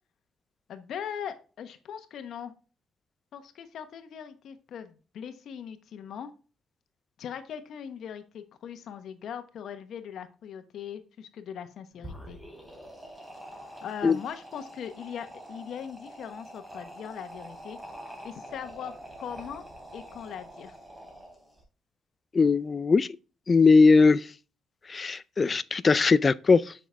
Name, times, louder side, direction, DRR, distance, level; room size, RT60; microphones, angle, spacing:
voice 1, 0.7-2.5 3.3-6.3 7.2-12.4 13.8-17.8 18.2-18.9 19.2-19.6 19.9-20.8, left 8 dB, 70° left, 1.1 m, -40 dB
sound 1, 11.9-21.6, right 1 dB, 10° right, 3.3 m, -45 dB
voice 2, 22.3-23.1 23.5-24.3 24.9-26.7, left 4 dB, 35° left, 0.4 m, -20 dB
7.4 x 5.9 x 3.4 m
cardioid pair, 90°, 0 cm